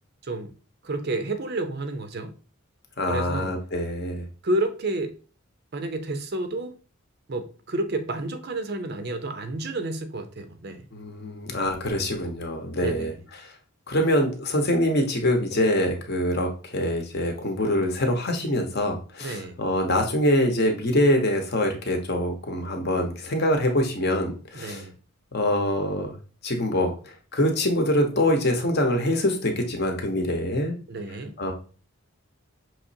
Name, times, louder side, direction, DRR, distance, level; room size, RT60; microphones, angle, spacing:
voice 1, 0.8-2.3 3.1-3.5 4.4-5.1 5.7-6.7 7.3-10.9 12.8-13.2 19.2-19.6 24.5-25.0 30.9-31.3, right 2 dB, 45° right, 0.5 m, -30 dB
voice 2, 3.0-4.3 10.9-13.1 13.9-24.8 25.3-26.1 26.4-30.7 31.4-31.5, left 1 dB, 45° left, 0.8 m, -24 dB
5.7 x 3.0 x 2.7 m
head